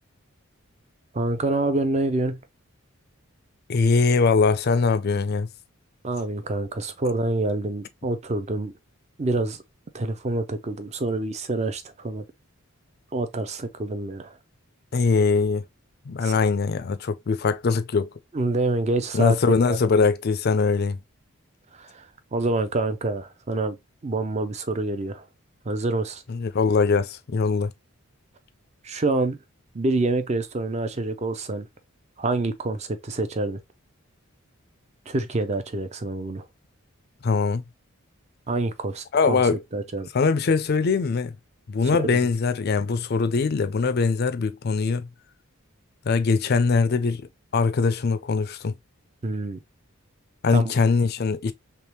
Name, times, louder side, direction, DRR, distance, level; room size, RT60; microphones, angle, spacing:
voice 1, 1.1-2.4 6.0-8.7 9.2-9.6 9.9-12.2 13.1-14.3 16.2-16.3 18.3-19.4 19.7-20.1 21.8-22.1 22.3-23.8 24.0-25.2 25.7-26.2 28.8-29.4 29.7-31.7 32.2-33.6 35.1-36.5 38.5-39.4 39.7-40.1 42.1-42.2 49.2-49.6 50.5-50.7, right 2 dB, 30° right, 0.5 m, -27 dB
voice 2, 3.7-5.5 14.9-15.6 16.1-18.1 19.1-21.0 26.3-27.7 37.2-37.6 39.1-39.6 40.1-41.3 41.7-45.1 46.1-47.3 47.5-48.7 50.4-51.5, left 4 dB, 50° left, 0.4 m, -22 dB
3.5 x 2.9 x 2.9 m
head